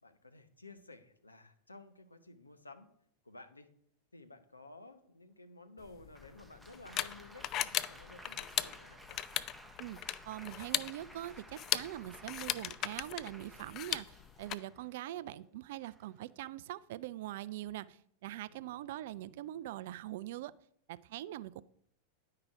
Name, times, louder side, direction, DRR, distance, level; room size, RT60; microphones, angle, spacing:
voice 1, 0.0-2.9 3.2-3.7 4.1-9.2 14.6-14.7 15.0-15.4 18.5-19.0, left 2 dB, 80° left, 9 dB, 0.8 m, -54 dB
sound 1, 5.8-14.5, left 12 dB, 35° left, 0.3 m, -38 dB
Applause, 6.1-15.0 15.8-16.2, right 1 dB, ahead, 0.7 m, -56 dB
voice 2, 10.3-20.5 20.9-21.6, right 14 dB, 55° right, 18 dB, 0.3 m, -43 dB
10.0 x 4.8 x 4.7 m, 0.70 s
figure-of-eight pair, 90°, 0 cm